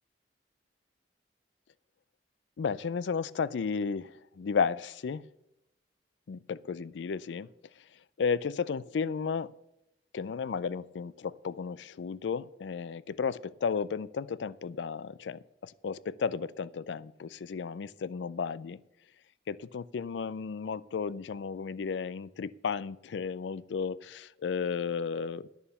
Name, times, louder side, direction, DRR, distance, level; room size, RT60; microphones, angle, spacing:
voice 1, 2.6-5.2 6.3-7.5 8.2-9.5 10.1-18.8 19.5-25.5, left 5 dB, 85° left, 0.4 m, -33 dB
11.0 x 7.0 x 6.9 m
head